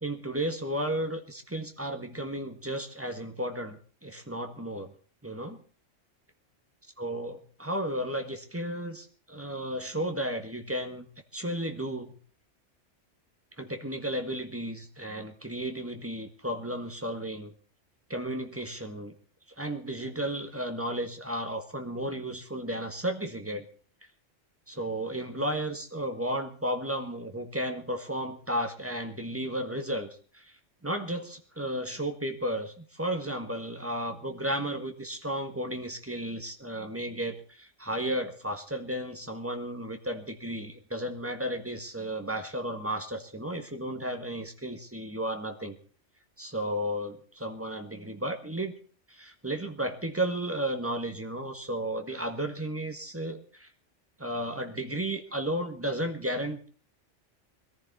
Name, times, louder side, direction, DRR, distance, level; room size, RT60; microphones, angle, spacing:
voice 1, 0.0-4.9 5.2-5.6 7.0-12.1 13.6-17.5 18.1-19.1 19.6-23.7 24.7-30.1 30.3-30.5 30.8-45.8 46.4-48.7 49.1-53.7 54.2-56.7, right 1 dB, 10° right, 5 dB, 1.5 m, -33 dB
21.0 x 14.5 x 4.2 m, 0.42 s
omnidirectional pair, 1.3 m